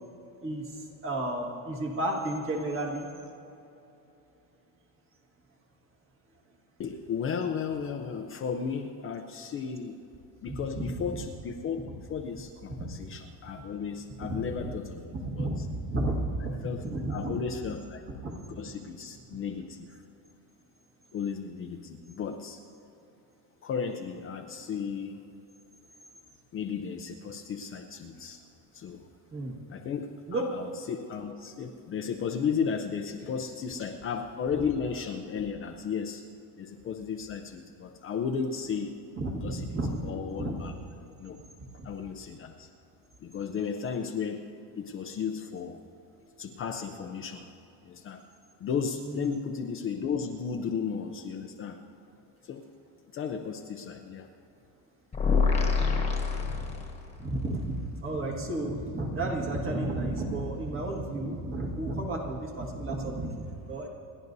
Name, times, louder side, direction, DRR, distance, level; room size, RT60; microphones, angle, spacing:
voice 1, 0.4-3.1 10.5-10.6 10.9-11.2 12.8-12.9 14.6-14.7 15.1-17.4 18.2-18.4 29.3-29.6 30.3-30.5 39.2-40.0 40.4-40.6 49.1-49.3 56.4-56.7 57.2-63.9, right 1 dB, 30° right, 0 dB, 1.7 m, -32 dB
voice 2, 6.8-10.0 10.4-15.7 16.4-18.0 18.6-20.0 21.1-22.6 23.6-25.2 26.5-28.4 28.7-29.0 29.7-36.2 36.6-38.9 39.4-40.7 41.2-41.4 41.8-42.7 43.2-45.8 46.4-47.5 47.8-48.2 48.6-51.8 52.4-52.7 53.1-54.3, left 6 dB, 30° left, 4 dB, 0.5 m, -34 dB
sound 1, 55.1-57.2, left 5 dB, 15° left, 1.3 m, -26 dB
29.0 x 11.0 x 2.7 m, 2.9 s
cardioid pair, 170°, 41 cm